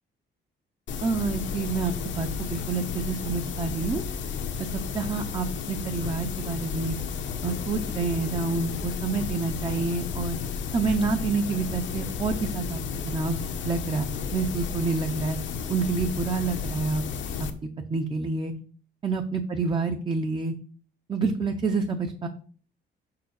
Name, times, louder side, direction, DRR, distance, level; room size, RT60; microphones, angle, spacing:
sound 1, 0.9-17.5, left 6 dB, 75° left, 1.0 m, -33 dB
voice 1, 1.0-4.0 4.6-7.0 7.4-10.4 10.7-12.8 13.1-13.4 13.6-14.0 14.3-15.4 15.7-17.0 17.9-18.5 19.0-20.5 21.1-22.3, right 4 dB, 25° right, 4 dB, 0.6 m, -28 dB
6.0 x 4.8 x 6.3 m, 0.44 s
cardioid pair, 165°, 19 cm